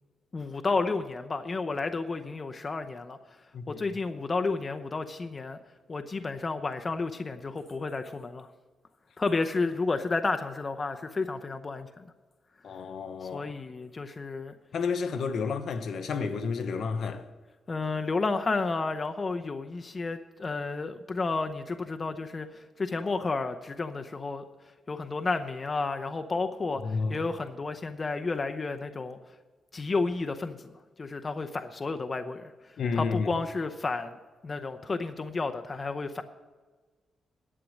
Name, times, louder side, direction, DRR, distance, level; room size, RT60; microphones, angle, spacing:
voice 1, 0.3-3.2 3.7-5.6 5.9-8.5 9.2-12.1 13.2-14.5 17.7-24.4 24.9-29.2 29.7-32.5 32.9-34.2 34.4-36.2, left 3 dB, 35° left, 0.7 m, -31 dB
voice 2, 12.6-13.5 14.7-17.2 26.8-27.3 32.8-33.4, left 5 dB, 65° left, 0.9 m, -31 dB
11.0 x 8.5 x 6.4 m
cardioid pair, 95°, 0 cm